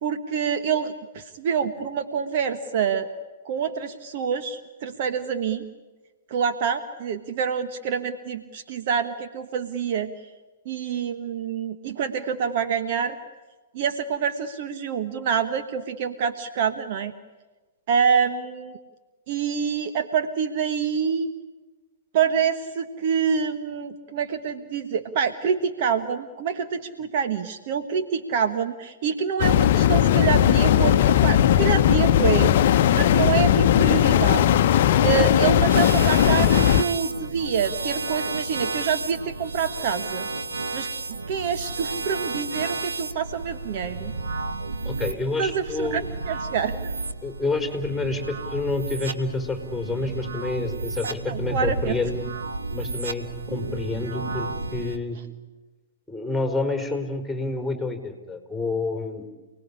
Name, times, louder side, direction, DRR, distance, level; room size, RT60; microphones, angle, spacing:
voice 1, 0.0-3.1 3.4-5.6 6.3-10.1 10.6-13.2 13.7-17.1 17.9-18.7 19.3-21.3 22.1-32.5 32.9-40.3 40.7-40.9 41.3-44.1 45.4-46.7 51.0-52.0, right 7 dB, 50° right, 9 dB, 1.4 m, -26 dB
sound 1, 29.4-36.8, left 11 dB, 50° left, 0.9 m, -18 dB
Weird Noisesw, 35.7-55.0, right 3 dB, 75° right, 2.0 m, -32 dB
voice 2, 44.8-46.1 47.2-52.3 52.7-55.2 56.1-59.3, left 3 dB, ahead, 5 dB, 4.7 m, -28 dB
29.5 x 19.5 x 10.0 m, 1.3 s
figure-of-eight pair, 110°, 0 cm